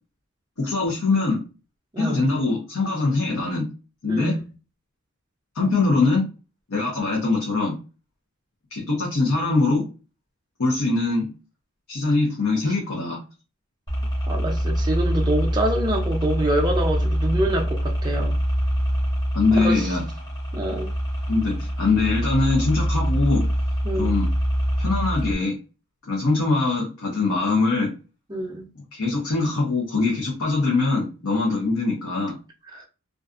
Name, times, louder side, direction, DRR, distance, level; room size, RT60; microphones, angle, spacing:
voice 1, 0.6-1.4 2.0-3.7 4.0-4.4 5.5-6.3 6.7-7.8 8.7-9.9 10.6-11.3 11.9-13.2 19.3-20.0 21.3-23.5 24.0-24.3 24.8-25.6 26.0-27.9 28.9-32.4, left 3 dB, 75° left, 0.7 m, -22 dB
voice 2, 1.9-2.2 4.1-4.4 14.3-18.4 19.6-19.8 20.5-20.9 23.8-24.2 28.3-28.6 32.7-32.8, right 1 dB, 20° right, 0.4 m, -26 dB
sound 1, 13.9-25.3, equal, 20° left, 0.7 m, -24 dB
2.4 x 2.4 x 2.4 m
head